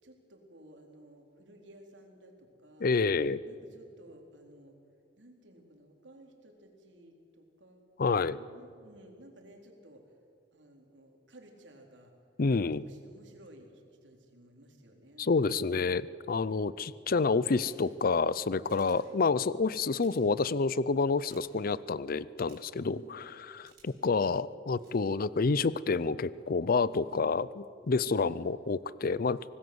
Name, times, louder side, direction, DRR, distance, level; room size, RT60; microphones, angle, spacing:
voice 1, 0.0-3.0 3.4-4.8 5.2-7.9 8.3-10.2 10.5-12.1 12.5-15.8 16.3-16.7 18.9-19.2 22.9-23.2 28.0-28.3, right 1 dB, 90° right, 2 dB, 4.0 m, -56 dB
voice 2, 2.8-3.4 8.0-8.4 12.4-12.8 15.2-23.2 23.5-29.4, left 4 dB, 55° left, 18 dB, 0.5 m, -28 dB
sound 1, 17.5-17.9 18.7-19.0 19.9-20.2 21.2-21.4 22.5-22.8 23.7-24.1 24.7-25.0, right 7 dB, 55° right, 7.4 m, -59 dB
25.5 x 18.5 x 8.0 m, 2.4 s
head